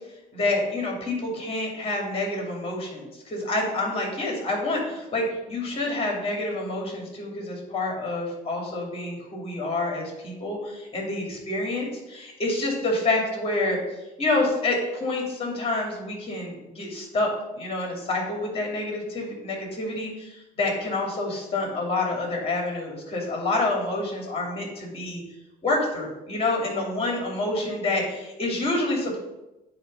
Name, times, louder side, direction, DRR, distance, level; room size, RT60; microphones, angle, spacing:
voice 1, 0.3-13.8 14.2-25.2 25.6-29.2, left 2 dB, 35° left, 0 dB, 2.5 m, -28 dB
9.2 x 3.2 x 5.2 m, 0.97 s
cardioid pair, 110°, 17 cm